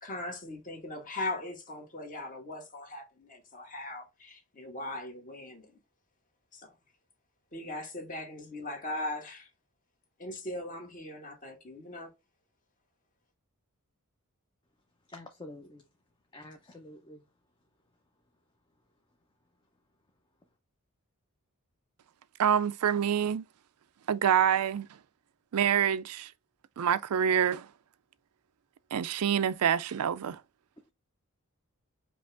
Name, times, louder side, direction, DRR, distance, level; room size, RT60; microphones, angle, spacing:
voice 1, 0.0-5.7 6.5-6.7 7.5-9.5 10.2-12.1, left 2 dB, 35° left, 1.5 m, -39 dB
voice 2, 15.1-15.8 16.3-17.2, left 1 dB, 20° left, 0.6 m, -47 dB
voice 3, 22.4-23.4 24.1-24.9 25.5-26.3 26.8-27.7 28.9-30.4, right 8 dB, 85° right, 0.4 m, -26 dB
5.1 x 3.0 x 3.4 m
head